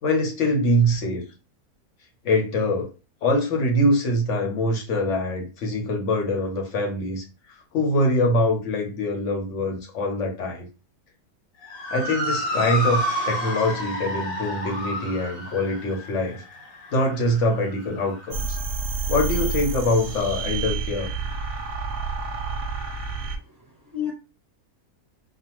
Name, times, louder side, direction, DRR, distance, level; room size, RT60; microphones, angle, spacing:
voice 1, 0.0-1.2 2.2-2.9 3.2-7.2 7.7-10.6 11.9-13.0 13.3-16.4 16.9-18.6 19.1-21.1, left 1 dB, 55° left, 1 dB, 1.0 m, -23 dB
Motor vehicle (road) / Siren, 11.6-20.2, equal, 75° left, 1.3 m, -31 dB
sound 1, 18.3-23.4, right 4 dB, 70° right, 0.9 m, -29 dB
voice 2, 23.1-24.1, left 10 dB, ahead, -7 dB, 1.1 m, -34 dB
2.5 x 2.3 x 2.9 m, 0.31 s
omnidirectional pair, 1.7 m